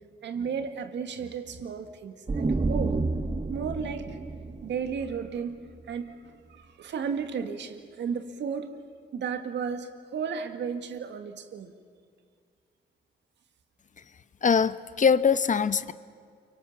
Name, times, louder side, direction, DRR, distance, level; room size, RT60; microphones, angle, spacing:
voice 1, 0.2-3.0 3.5-4.2 4.6-5.6 5.9-6.1 6.6-8.7 9.1-11.7, right 6 dB, 85° right, 8 dB, 2.1 m, -33 dB
sound 1, 2.3-5.9, right 3 dB, 35° right, 1.6 m, -30 dB
voice 2, 14.4-15.9, left 6 dB, 45° left, 14 dB, 1.0 m, -22 dB
30.0 x 24.5 x 7.3 m, 2.2 s
cardioid pair, 105°, 18 cm